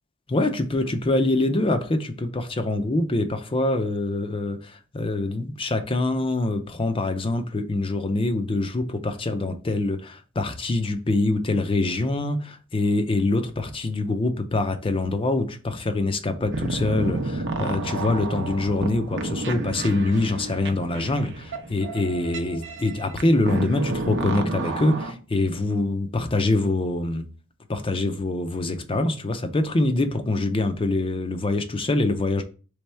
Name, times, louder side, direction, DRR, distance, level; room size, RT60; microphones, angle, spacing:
voice 1, 0.3-27.3 27.7-32.4, left 2 dB, 25° left, 0.5 m, -24 dB
sound 1, 16.5-25.1, right 2 dB, 60° right, 0.7 m, -30 dB
3.5 x 3.3 x 4.3 m
head